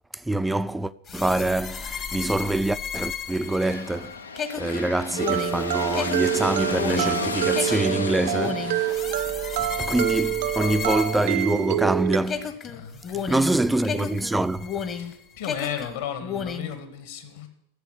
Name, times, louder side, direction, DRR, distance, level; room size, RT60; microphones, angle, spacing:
voice 1, 0.3-4.1 4.6-9.0 9.6-12.5 13.2-14.7, right 2 dB, 5° right, 0.5 m, -25 dB
sound 1, 1.1-11.9 12.3-15.1 15.4-16.7, left 6 dB, 25° left, 1.1 m, -33 dB
sound 2, 3.3-10.9, left 4 dB, 75° left, 0.7 m, -34 dB
sound 3, 5.2-12.2, right 16 dB, 50° right, 0.6 m, -27 dB
voice 2, 12.7-13.3 14.9-17.5, left 9 dB, 55° left, 1.9 m, -35 dB
14.0 x 7.7 x 8.1 m
figure-of-eight pair, 90°, 0 cm